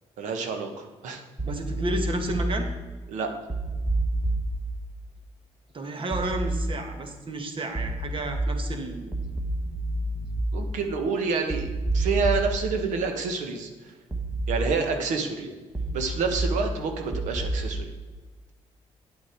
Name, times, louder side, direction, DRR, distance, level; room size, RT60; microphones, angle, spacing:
voice 1, 0.2-1.2 3.1-3.3 10.5-13.7 14.5-15.5 15.9-17.9, right 4 dB, 90° right, 5 dB, 1.4 m, -28 dB
sound 1, 1.4-2.4 3.5-4.4 6.1-6.4 7.7-8.4 9.1-10.4 11.5-12.4 14.1-14.4 15.7-16.4 17.1-17.5, right 2 dB, 15° right, 1.4 m, -29 dB
voice 2, 1.4-2.7 5.7-9.1 15.0-15.1 15.4-15.5, right 2 dB, 45° right, 5 dB, 1.7 m, -32 dB
9.6 x 8.6 x 4.6 m, 1.3 s
cardioid pair, 95°, 12 cm